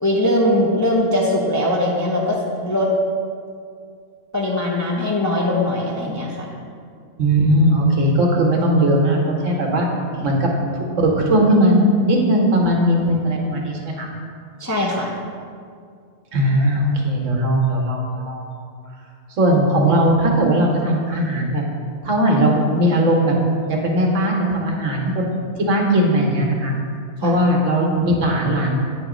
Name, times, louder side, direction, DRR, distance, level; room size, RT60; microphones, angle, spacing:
voice 1, 0.0-2.9 4.3-6.5 10.1-10.2 14.6-15.1 27.2-27.4, left 1 dB, 25° left, -3 dB, 0.4 m, -21 dB
voice 2, 7.2-9.9 10.2-14.1 16.3-18.5 19.4-21.6 22.0-23.4 23.7-26.7 27.2-28.7, right 1 dB, 70° right, 0 dB, 1.3 m, -18 dB
8.6 x 3.0 x 4.9 m, 2.2 s
omnidirectional pair, 1.4 m